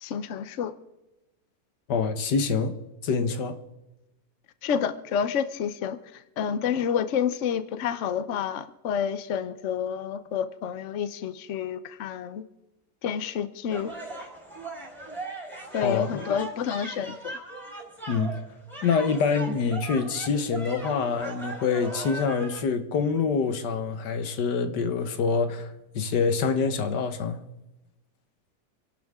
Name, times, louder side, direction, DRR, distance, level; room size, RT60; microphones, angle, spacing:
voice 1, 0.0-0.7 4.6-6.0 6.4-12.4 13.0-13.9 15.7-17.4, left 8 dB, 55° left, 1.0 m, -29 dB
voice 2, 1.9-2.8 3.0-3.6 15.8-16.2 18.1-18.4 18.8-27.4, left 5 dB, 80° left, 1.7 m, -26 dB
sound 1, 13.7-22.6, right 2 dB, ahead, 4.2 m, -39 dB
28.5 x 11.5 x 3.6 m
omnidirectional pair, 1.8 m